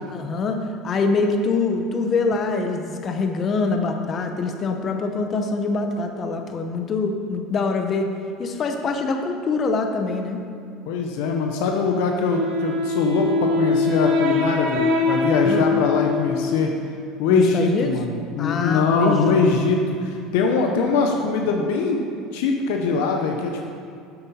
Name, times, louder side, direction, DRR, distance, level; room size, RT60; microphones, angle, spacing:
voice 1, 0.1-0.6 0.8-8.1 8.4-10.4 15.5-15.7 17.3-17.9 18.4-19.4, left 4 dB, 30° left, 5 dB, 0.8 m, -24 dB
voice 2, 10.9-16.7 17.2-23.7, left 4 dB, 80° left, 2 dB, 0.9 m, -22 dB
Wind instrument woodwind instrument, 12.3-17.1, left 3 dB, 80° right, 1.7 m, -23 dB
9.7 x 7.9 x 4.3 m, 2.5 s
cardioid pair, 150°, 0 cm